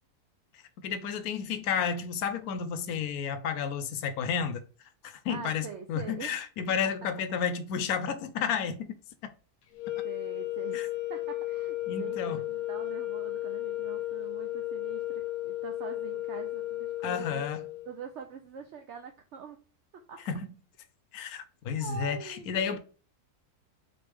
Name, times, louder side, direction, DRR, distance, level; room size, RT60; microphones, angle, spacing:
voice 1, 0.8-4.6 5.0-9.0 9.2-9.3 10.7-10.9 11.9-12.4 17.0-17.6 20.3-20.5 21.1-22.8, left 7 dB, 80° left, 1.1 m, -31 dB
voice 2, 5.3-6.4 6.8-6.9 10.0-17.5 17.9-19.6 20.1-20.2 21.8-22.8, right 7 dB, 70° right, 0.7 m, -44 dB
sound 1, 9.7-17.9, left 16 dB, 60° left, 0.7 m, -34 dB
3.9 x 3.2 x 3.4 m
omnidirectional pair, 1.6 m